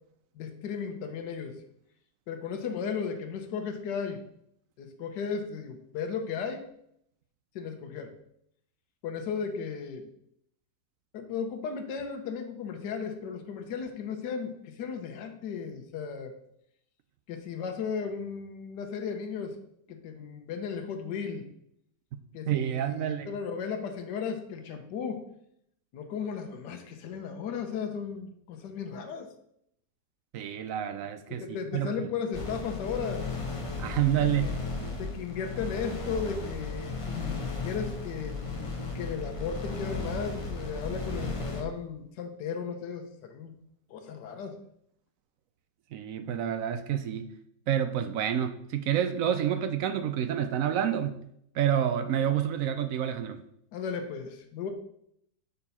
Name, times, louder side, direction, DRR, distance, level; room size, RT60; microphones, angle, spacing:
voice 1, 0.3-1.6 2.3-4.2 4.8-6.7 7.5-8.1 9.0-10.1 11.1-16.3 17.3-19.6 19.9-21.5 22.3-25.3 25.9-29.3 31.3-33.3 34.4-34.5 35.0-43.5 43.9-44.6 53.7-54.7, left 6 dB, 75° left, 5 dB, 1.5 m, -35 dB
voice 2, 22.5-23.4 30.3-31.9 33.8-34.6 45.9-47.3 47.7-51.2 51.5-53.4, right 9 dB, 75° right, 9 dB, 0.7 m, -28 dB
sound 1, 32.3-41.6, left 3 dB, 30° left, 0.6 m, -35 dB
6.9 x 4.5 x 5.5 m, 0.72 s
omnidirectional pair, 1.9 m